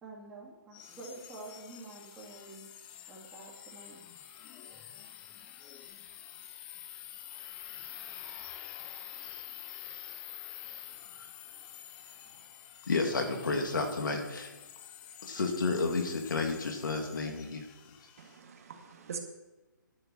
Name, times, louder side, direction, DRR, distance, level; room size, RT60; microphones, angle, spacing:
voice 1, 0.0-2.6 3.1-4.0, right 2 dB, 10° right, -6 dB, 2.7 m, -48 dB
sound 1, 0.7-18.4, left 11 dB, 10° left, 0.3 m, -48 dB
voice 2, 12.9-14.5 15.2-17.7, left 3 dB, 70° left, 3 dB, 2.5 m, -31 dB
voice 3, 18.2-19.2, right 6 dB, 45° right, 3 dB, 1.9 m, -43 dB
11.0 x 7.0 x 7.8 m, 1.1 s
hypercardioid pair, 165°, 11 cm